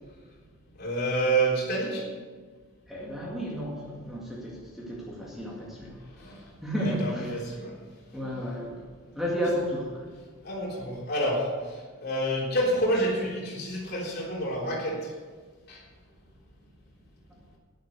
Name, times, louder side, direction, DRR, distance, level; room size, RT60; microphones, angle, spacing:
voice 1, 0.8-2.0 6.2-6.4 6.8-7.7 10.4-15.1 15.7-15.8, right 1 dB, 45° left, -3 dB, 3.6 m, -28 dB
voice 2, 2.9-6.0 6.6-7.4 8.1-8.8 9.1-10.0, equal, ahead, -5 dB, 2.0 m, -32 dB
11.5 x 10.5 x 6.7 m, 1.5 s
head